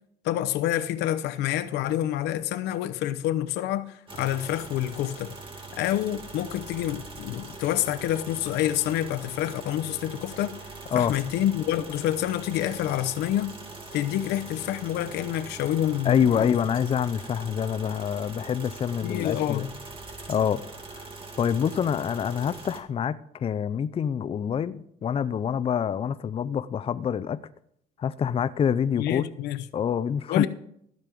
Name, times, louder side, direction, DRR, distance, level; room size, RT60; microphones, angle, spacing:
voice 1, 0.2-5.3 5.7-10.5 10.9-13.6 13.9-16.6 19.0-19.7 29.0-29.7 30.3-30.5, left 12 dB, 85° left, 0.8 m, -27 dB
sound 1, 4.1-22.8, right 3 dB, 30° right, 2.2 m, -42 dB
voice 2, 16.0-19.7 20.3-20.6 20.9-21.0 21.4-27.4 28.0-29.2 29.7-30.5, left 8 dB, 35° left, 0.5 m, -26 dB
15.0 x 5.3 x 7.7 m
cardioid pair, 110°, 17 cm